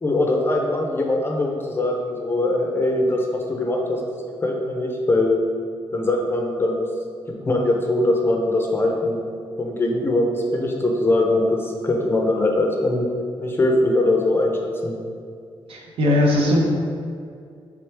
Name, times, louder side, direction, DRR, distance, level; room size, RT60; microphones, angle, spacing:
voice 1, 0.0-4.0 4.4-5.4 5.9-6.8 7.5-9.2 9.6-13.1 13.4-15.0, left 2 dB, 25° left, 0 dB, 0.4 m, -21 dB
voice 2, 15.7-16.6, left 1 dB, 65° right, -1 dB, 0.7 m, -19 dB
4.5 x 3.5 x 3.2 m, 2.3 s
wide cardioid pair, 175°, 10 cm